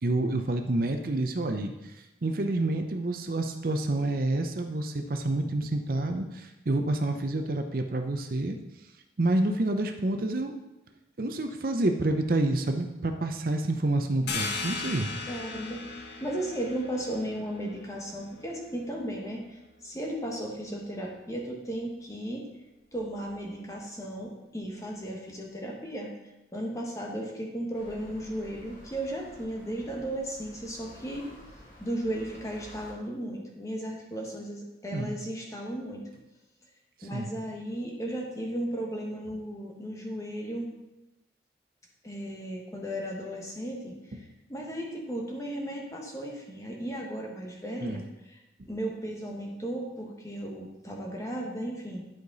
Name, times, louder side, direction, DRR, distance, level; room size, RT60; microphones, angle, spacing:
voice 1, 0.0-8.6 9.2-10.5 11.2-15.1 34.9-35.1 37.0-37.3 47.8-48.0, right 2 dB, 50° right, 5 dB, 0.6 m, -28 dB
sound 1, 14.3-19.6, left 4 dB, 75° left, 1.1 m, -38 dB
voice 2, 15.3-22.4 22.9-26.1 26.5-31.3 31.8-36.0 37.0-40.7 42.0-43.9 44.5-48.4 48.7-52.0, right 1 dB, 20° left, -1 dB, 1.3 m, -35 dB
sound 2, 27.7-32.9, equal, 45° left, 2.1 m, -51 dB
10.5 x 4.9 x 4.0 m, 0.98 s
head